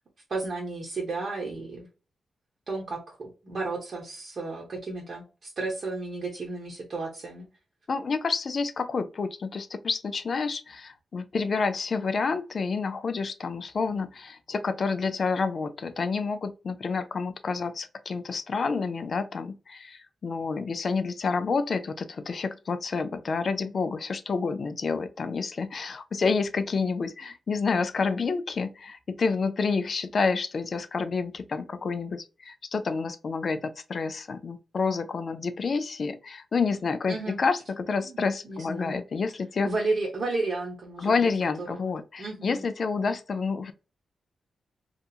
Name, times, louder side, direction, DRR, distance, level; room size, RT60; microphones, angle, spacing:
voice 1, 0.3-1.9 2.7-7.5 37.1-37.4 38.0-39.0 39.6-41.2 41.6-42.7, right 3 dB, 45° right, 0.8 m, -33 dB
voice 2, 7.9-39.7 41.0-43.7, left 4 dB, 45° left, 0.3 m, -29 dB
2.8 x 2.4 x 2.3 m
wide cardioid pair, 140°, 0 cm